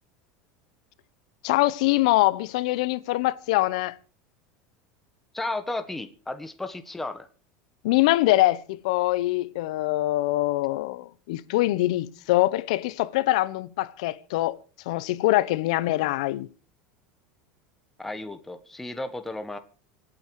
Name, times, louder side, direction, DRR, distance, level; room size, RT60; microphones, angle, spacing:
voice 1, 1.4-4.0 7.8-14.6 14.9-16.5, left 17 dB, 75° left, 1.0 m, -24 dB
voice 2, 5.3-7.3 18.0-19.6, left 2 dB, 5° left, 1.4 m, -33 dB
26.0 x 8.9 x 4.8 m
supercardioid pair, 135°, 4 cm